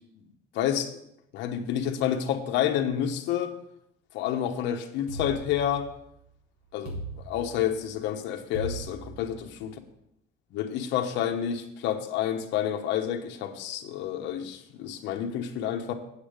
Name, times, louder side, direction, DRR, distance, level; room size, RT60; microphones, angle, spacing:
voice 1, 0.5-0.9 1.3-3.6 4.1-5.9 6.7-9.7 10.5-15.9, left 10 dB, 70° left, 4 dB, 1.1 m, -29 dB
sound 1, 5.1-6.2 6.8-7.9 8.5-9.7, right 2 dB, 55° right, 4.6 m, -38 dB
8.6 x 8.2 x 5.1 m, 0.77 s
cardioid pair, 145°, 19 cm